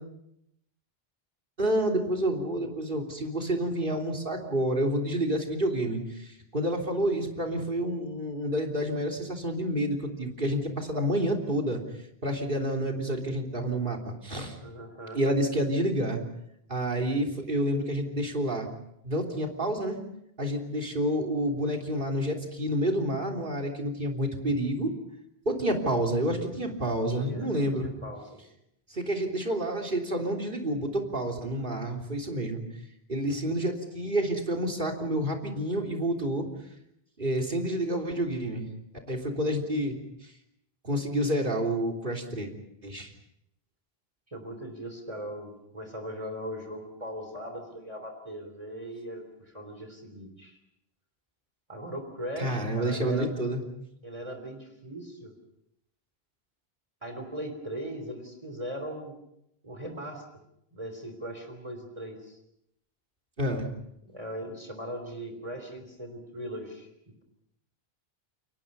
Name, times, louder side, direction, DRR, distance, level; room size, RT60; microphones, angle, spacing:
voice 1, 1.6-11.8 12.2-14.6 15.1-16.2 16.7-18.7 19.0-20.0 20.4-24.9 25.4-27.9 28.9-32.6 33.1-36.4 37.2-38.6 39.1-39.9 40.8-42.5 42.8-43.1 52.4-53.6 63.4-63.7, right 1 dB, 55° right, 2 dB, 3.6 m, -29 dB
voice 2, 14.6-15.2 27.1-27.5 27.8-28.2 44.3-50.6 51.7-53.3 54.0-55.3 57.0-59.1 59.6-60.2 60.7-62.4 64.0-67.2, equal, 30° right, 5 dB, 3.6 m, -39 dB
29.5 x 23.5 x 5.5 m, 0.80 s
omnidirectional pair, 1.1 m